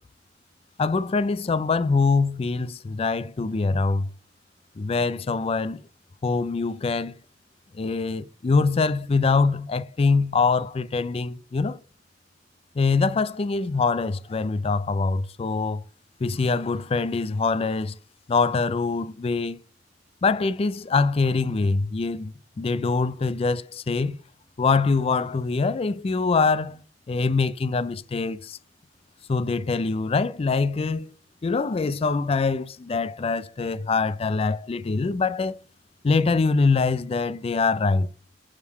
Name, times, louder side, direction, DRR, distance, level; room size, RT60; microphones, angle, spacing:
voice 1, 0.8-4.1 4.8-5.8 6.2-7.1 7.7-11.8 12.8-15.8 16.2-17.9 18.3-19.6 20.2-24.2 24.6-28.6 29.3-31.1 31.4-35.6 36.0-38.1, left 4 dB, 35° left, 0.4 m, -24 dB
6.4 x 3.5 x 4.7 m
head